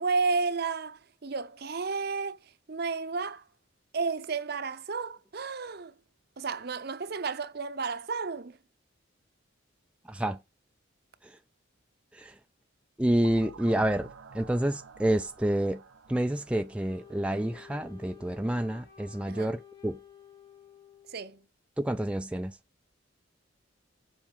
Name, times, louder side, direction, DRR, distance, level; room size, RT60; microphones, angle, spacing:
voice 1, 0.0-2.4 2.7-3.4 3.9-5.9 6.4-8.6 19.3-19.5 21.1-21.4, right 4 dB, 50° right, 0.7 m, -32 dB
voice 2, 10.0-10.4 11.2-11.4 12.1-12.4 13.0-15.8 16.1-20.0 21.8-22.6, right 1 dB, 5° right, 0.3 m, -29 dB
sound 1, 13.2-17.9, right 5 dB, 85° right, 0.8 m, -50 dB
Wind instrument woodwind instrument, 16.9-21.5, left 8 dB, 50° left, 2.4 m, -53 dB
7.3 x 4.7 x 5.4 m
head